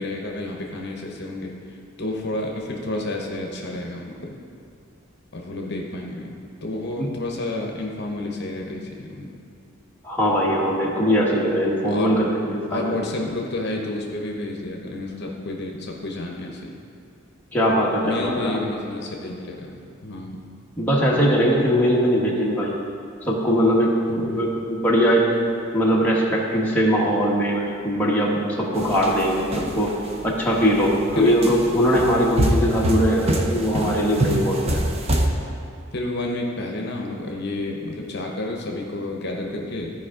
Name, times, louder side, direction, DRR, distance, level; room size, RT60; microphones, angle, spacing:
voice 1, 0.0-4.3 5.3-6.3 6.6-9.3 11.9-12.2 12.7-16.7 18.0-19.7 20.0-20.4 24.1-24.5 28.8-28.9 30.6-31.4 34.6-34.9 35.9-39.9, left 2 dB, 55° left, 0 dB, 0.9 m, -30 dB
voice 2, 10.0-13.0 17.5-18.6 20.8-22.7 23.3-25.2 25.7-29.9 30.2-34.8, equal, 10° left, -5 dB, 1.2 m, -21 dB
sound 1, 28.8-30.1 30.7-30.9 31.4-35.3, right 1 dB, 30° right, 0.7 m, -24 dB
14.5 x 4.9 x 3.7 m, 2.5 s
head